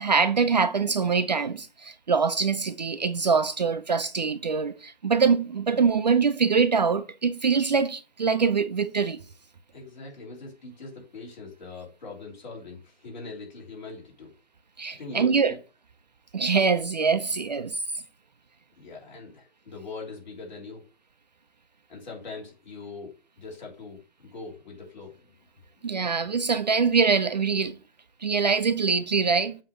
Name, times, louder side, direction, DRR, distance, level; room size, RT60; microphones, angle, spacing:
voice 1, 0.0-9.2 14.8-15.5 16.3-17.8 25.8-27.8 28.2-29.6, right 5 dB, 45° right, 0.4 m, -24 dB
voice 2, 9.7-14.3 15.0-15.6 18.8-20.8 21.9-25.3, left 3 dB, 45° left, 3.2 m, -42 dB
7.7 x 2.9 x 4.9 m
hypercardioid pair, 160°, 31 cm